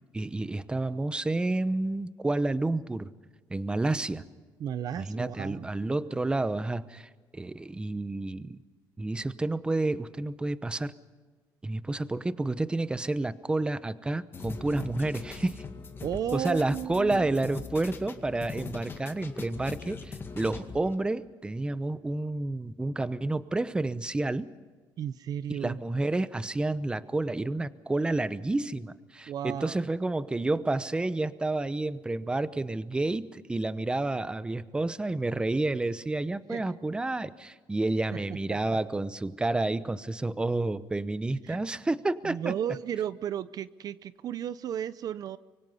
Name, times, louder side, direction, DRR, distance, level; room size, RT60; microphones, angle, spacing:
voice 1, 0.1-3.1 3.5-4.3 5.0-8.6 9.0-10.9 11.6-15.6 16.3-24.5 25.5-42.5, right 2 dB, 10° right, 14 dB, 0.8 m, -30 dB
voice 2, 4.6-5.7 16.0-17.3 25.0-25.8 29.3-29.8 36.5-36.6 38.1-38.6 41.5-41.6 42.2-45.4, right 9 dB, 55° right, 16 dB, 0.6 m, -34 dB
sound 1, 14.3-20.9, left 4 dB, 30° left, 2.1 m, -41 dB
25.0 x 23.5 x 5.6 m, 1.4 s
cardioid pair, 130°, 8 cm